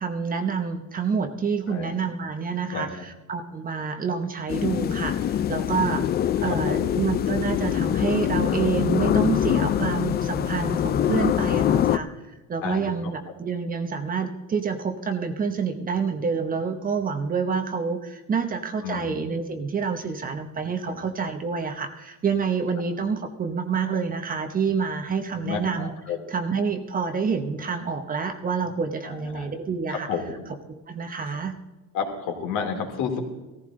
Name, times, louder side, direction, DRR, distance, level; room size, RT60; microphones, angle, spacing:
voice 1, 0.0-6.0 6.4-12.1 12.5-25.9 26.3-30.1 30.7-31.5, right 5 dB, 25° right, 7 dB, 1.0 m, -28 dB
sound 1, 4.5-12.0, left 10 dB, 30° left, 0.4 m, -24 dB
voice 2, 6.5-6.9 12.6-13.1 18.8-19.2 20.9-21.0 25.4-26.2 29.0-29.5 29.9-30.4 31.9-33.2, left 6 dB, 60° left, 2 dB, 3.1 m, -31 dB
16.5 x 14.5 x 3.8 m, 1.1 s
cardioid pair, 135°, 34 cm